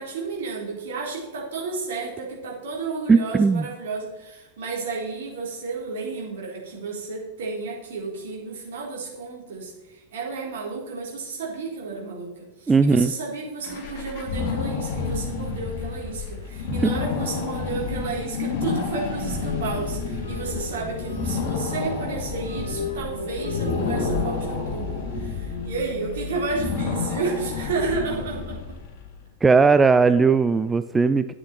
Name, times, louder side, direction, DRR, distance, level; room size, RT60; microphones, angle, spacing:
voice 1, 0.0-28.6, right 4 dB, 60° right, -3 dB, 3.8 m, -32 dB
voice 2, 3.1-3.7 12.7-13.1 29.4-31.3, right 4 dB, 15° right, 11 dB, 0.4 m, -18 dB
sound 1, 13.6-29.1, left 5 dB, 45° left, 2.3 m, -30 dB
sound 2, 17.0-28.0, left 3 dB, 75° left, 2.5 m, -34 dB
11.0 x 8.7 x 4.4 m, 1.1 s
figure-of-eight pair, 90°, 0 cm